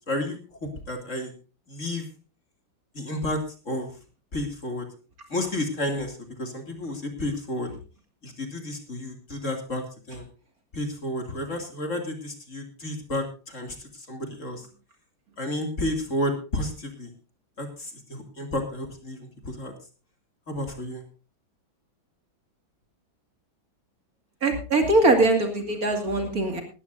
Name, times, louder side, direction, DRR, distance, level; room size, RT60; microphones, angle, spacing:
voice 1, 0.1-0.4 0.9-1.3 1.7-2.1 2.9-3.9 4.3-4.9 5.3-7.7 8.2-10.2 10.7-14.6 15.4-17.1 17.6-19.7 20.5-21.0, left 1 dB, 40° left, 5 dB, 2.7 m, -31 dB
voice 2, 24.4-26.6, right 2 dB, 45° right, 5 dB, 2.6 m, -22 dB
19.0 x 14.5 x 2.6 m, 0.34 s
omnidirectional pair, 2.2 m